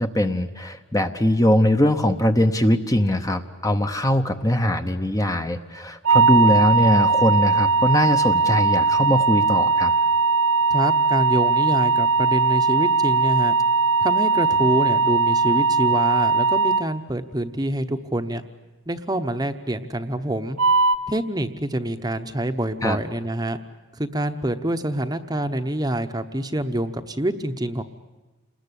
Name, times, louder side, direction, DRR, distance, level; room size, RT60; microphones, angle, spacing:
voice 1, 0.0-9.9 22.8-23.0, left 1 dB, 15° left, 7 dB, 0.8 m, -21 dB
sound 1, 6.0-16.9 20.6-21.0, right 4 dB, 90° right, 1.3 m, -19 dB
voice 2, 10.7-13.5 14.0-18.4 18.9-20.6 21.1-23.6 24.0-27.8, right 1 dB, 15° right, 8 dB, 0.9 m, -26 dB
28.5 x 20.5 x 10.0 m, 1.2 s
head